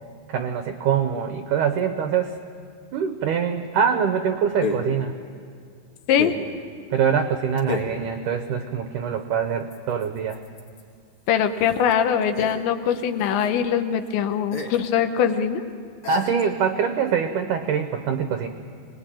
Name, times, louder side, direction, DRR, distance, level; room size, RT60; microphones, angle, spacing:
voice 1, 0.3-2.3 2.9-5.1 6.9-10.4 16.1-18.5, right 7 dB, 85° right, 6 dB, 1.8 m, -24 dB
sound 1, 1.8-1.9 4.6-5.0 6.2-6.5 7.6-8.0 9.7-10.9 11.3-11.4 11.6-12.9 13.2-13.5 14.1-14.2 14.5-14.9 15.2-15.3 16.0-16.5, left 2 dB, 40° left, 2.2 m, -31 dB
voice 2, 11.3-15.6, left 8 dB, 85° left, 7 dB, 3.5 m, -22 dB
25.5 x 20.5 x 9.0 m, 2.3 s
omnidirectional pair, 5.0 m